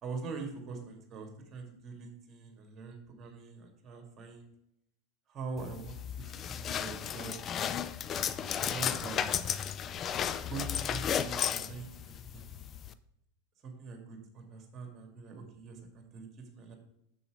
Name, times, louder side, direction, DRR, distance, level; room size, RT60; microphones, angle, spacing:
voice 1, 0.0-4.5 5.3-7.3 8.6-9.4 10.4-12.5 13.6-16.7, right 4 dB, 30° right, 3 dB, 2.4 m, -43 dB
sound 1, 5.6-12.9, left 8 dB, 30° left, 0.5 m, -34 dB
7.0 x 6.9 x 5.0 m, 0.79 s
figure-of-eight pair, 85°, 0 cm